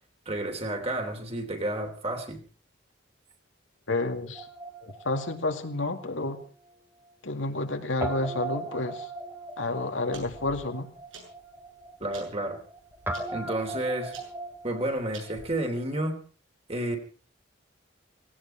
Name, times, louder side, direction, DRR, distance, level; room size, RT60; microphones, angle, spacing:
voice 1, 0.2-2.4 12.0-12.6 13.3-14.2 14.6-16.2 16.7-17.0, right 1 dB, 30° right, 4 dB, 3.3 m, -31 dB
voice 2, 3.9-4.5 4.8-6.4 7.2-9.1 9.6-10.9, left 2 dB, 80° left, 5 dB, 2.2 m, -30 dB
Guitar, 4.3-6.8 7.0-7.1 8.0-15.9, right 2 dB, 10° right, 1.7 m, -39 dB
sound 1, 9.5-15.4, right 4 dB, 80° right, 7.9 m, -51 dB
18.5 x 17.5 x 4.4 m, 0.40 s
head